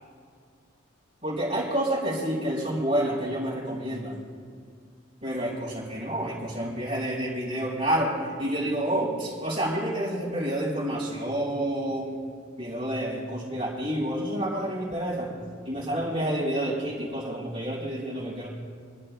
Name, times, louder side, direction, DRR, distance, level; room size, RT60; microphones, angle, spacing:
voice 1, 1.2-4.2 5.2-12.2 12.6-15.3 15.6-18.5, right 1 dB, 30° right, -8 dB, 3.9 m, -29 dB
25.5 x 13.0 x 2.3 m, 2.1 s
head